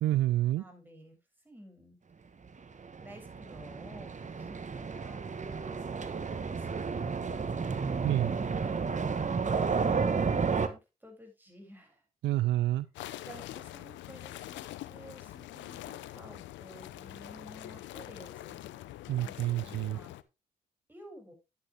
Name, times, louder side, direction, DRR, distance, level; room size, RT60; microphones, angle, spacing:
voice 1, 0.0-0.6 8.0-8.3 12.2-12.9 19.1-20.0, right 14 dB, 70° right, 17 dB, 0.6 m, -28 dB
voice 2, 0.6-1.2 1.4-2.0 3.0-5.2 5.5-5.8 9.1-12.0 13.2-18.6 19.2-20.1 20.9-21.3, equal, 10° right, 2 dB, 7.2 m, -53 dB
sound 1, 2.8-10.7, right 5 dB, 40° right, 1.5 m, -32 dB
sound 2, 12.9-20.2, left 14 dB, 75° left, 0.7 m, -44 dB
10.5 x 9.4 x 3.6 m, 0.26 s
hypercardioid pair, 45°, 19 cm